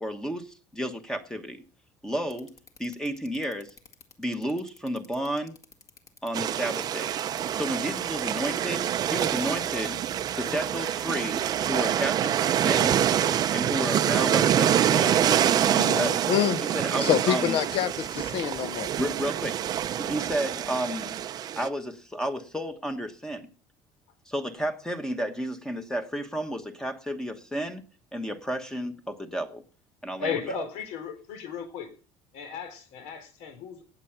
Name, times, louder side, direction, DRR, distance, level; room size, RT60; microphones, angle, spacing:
voice 1, 0.0-1.6 2.0-2.5 2.8-3.7 4.2-5.6 6.2-7.2 7.5-10.0 10.3-13.0 13.5-16.3 16.7-17.6 19.0-19.6 20.0-21.1 21.6-23.5 24.3-27.8 28.1-29.6 30.0-30.3, equal, 5° left, 1.2 m, -32 dB
sound 1, 2.3-12.1, left 5 dB, 30° left, 1.8 m, -51 dB
sound 2, 6.3-21.7, right 10 dB, 35° right, 0.6 m, -26 dB
voice 2, 15.7-16.6 17.0-18.9, left 11 dB, 50° left, 0.7 m, -27 dB
voice 3, 30.2-31.9 32.3-33.8, left 6 dB, 75° left, 4.4 m, -35 dB
17.5 x 7.7 x 5.8 m
cardioid pair, 160°, 12 cm